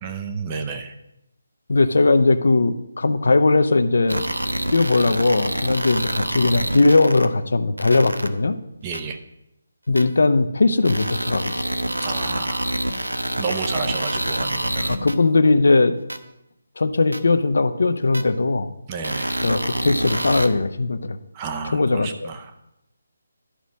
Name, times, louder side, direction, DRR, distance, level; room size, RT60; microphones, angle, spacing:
voice 1, 0.0-0.9 8.8-9.2 12.0-12.8 13.4-15.0 18.9-19.4 21.3-22.5, right 5 dB, 20° right, 5 dB, 0.7 m, -31 dB
voice 2, 1.7-4.2 4.7-8.6 9.9-11.6 14.9-15.9 16.8-18.7 19.4-21.2 21.7-22.3, left 3 dB, 60° left, 11 dB, 0.7 m, -19 dB
sound 1, 4.1-7.3 7.8-8.3 8.9-9.0 10.0-10.1 10.8-15.1 16.1-16.2 17.1-17.2 18.1-18.2 19.0-20.5, right 1 dB, 80° right, 0.8 m, -26 dB
11.5 x 5.1 x 6.3 m, 0.85 s
figure-of-eight pair, 150°, 0 cm